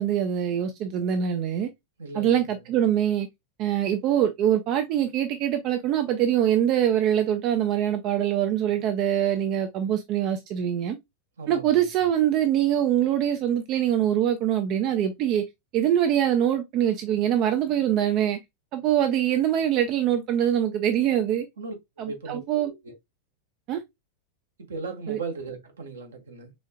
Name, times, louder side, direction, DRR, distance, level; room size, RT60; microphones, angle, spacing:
voice 1, 0.0-1.7 2.1-3.3 3.6-11.0 11.5-15.4 15.7-18.4 18.7-21.5 22.0-22.7 23.7-23.8 25.1-25.2, right 10 dB, 40° right, 0.7 m, -24 dB
voice 2, 2.0-2.7 11.4-11.8 21.6-22.9 24.6-26.5, right 4 dB, 65° right, 1.4 m, -37 dB
5.1 x 3.6 x 2.3 m
figure-of-eight pair, 90°, 0 cm